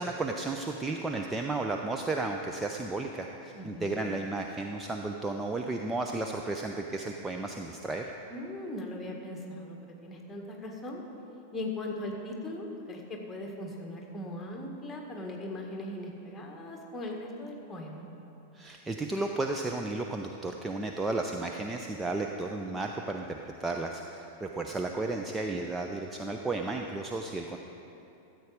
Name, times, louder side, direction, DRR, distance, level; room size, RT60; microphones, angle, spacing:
voice 1, 0.0-8.1 18.5-27.6, right 2 dB, 10° right, 2 dB, 0.6 m, -33 dB
voice 2, 3.5-4.1 8.3-11.0 11.5-18.1, left 1 dB, 15° left, 0 dB, 1.8 m, -39 dB
13.5 x 7.9 x 5.1 m, 2.9 s
figure-of-eight pair, 90°, 0 cm